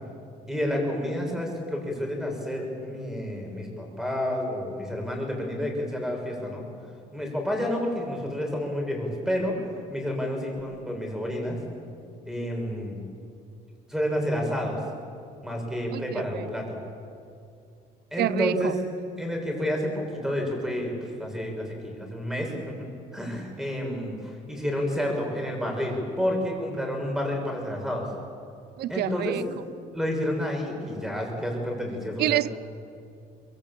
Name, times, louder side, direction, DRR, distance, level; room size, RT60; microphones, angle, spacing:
voice 1, 0.5-6.6 7.1-9.6 9.9-11.6 12.2-13.0 13.9-14.8 15.4-16.8 18.1-18.8 19.2-22.9 23.1-28.1 28.9-29.5 29.9-32.4, left 1 dB, 5° right, 1 dB, 6.9 m, -30 dB
voice 2, 15.9-16.5 18.2-18.7 28.8-29.4 32.2-32.5, right 15 dB, 70° right, 19 dB, 0.6 m, -27 dB
23.0 x 23.0 x 8.9 m, 2.5 s
cardioid pair, 110°, 17 cm